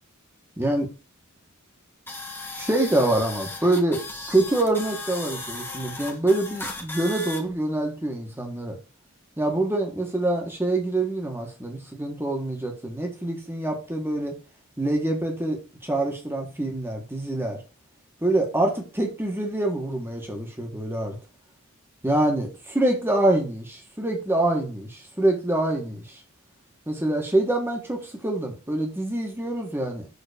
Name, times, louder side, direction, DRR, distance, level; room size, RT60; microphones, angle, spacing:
voice 1, 0.6-0.9 2.6-8.8 9.4-14.4 14.8-17.6 18.2-21.2 22.0-26.2 26.9-30.1, right 1 dB, 10° right, 1.5 m, -25 dB
sound 1, 2.1-7.4, left 2 dB, 10° left, 1.2 m, -36 dB
6.9 x 3.9 x 5.0 m
head